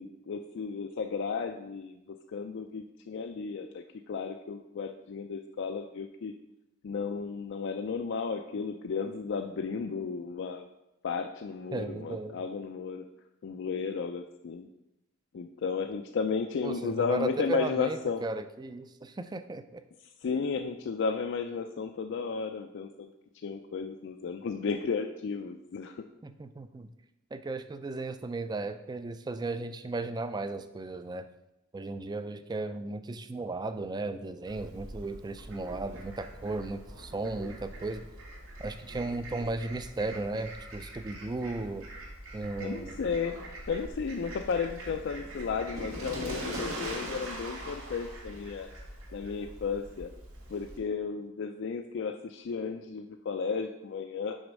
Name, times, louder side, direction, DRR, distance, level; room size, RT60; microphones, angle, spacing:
voice 1, 0.0-6.3 6.8-10.7 11.0-13.0 13.4-14.7 15.3-18.2 20.2-23.1 23.4-26.0 42.6-48.7 49.1-50.1 50.5-54.4, left 5 dB, 60° left, 5 dB, 0.4 m, -34 dB
voice 2, 11.7-12.4 16.6-19.8 26.2-26.9 27.3-31.3 31.7-38.1 38.6-41.9 42.3-43.0, right 3 dB, 20° right, 10 dB, 0.3 m, -35 dB
Fowl, 34.5-50.8, right 1 dB, 85° right, 2.3 m, -42 dB
6.3 x 4.3 x 6.1 m, 0.90 s
head